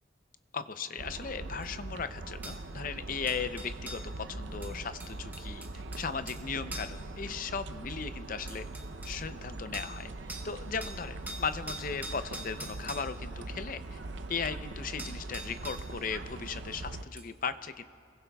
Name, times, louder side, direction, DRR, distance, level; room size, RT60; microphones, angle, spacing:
voice 1, 0.5-5.7 6.0-8.7 9.0-10.1 10.4-14.0 14.3-17.8, left 5 dB, 45° left, 11 dB, 0.5 m, -37 dB
sound 1, 1.0-17.0, right 2 dB, 65° right, 0.7 m, -42 dB
sound 2, 1.6-1.7 2.4-2.6 3.3-4.1 4.6-6.4 6.7-7.0 8.0-8.1 8.5-9.2 9.7-10.0 10.3-10.5 10.8-13.1 14.6-14.7 15.0-15.9 17.2-17.3, right 1 dB, 10° right, 1.0 m, -43 dB
28.5 x 21.5 x 2.3 m, 2.2 s
head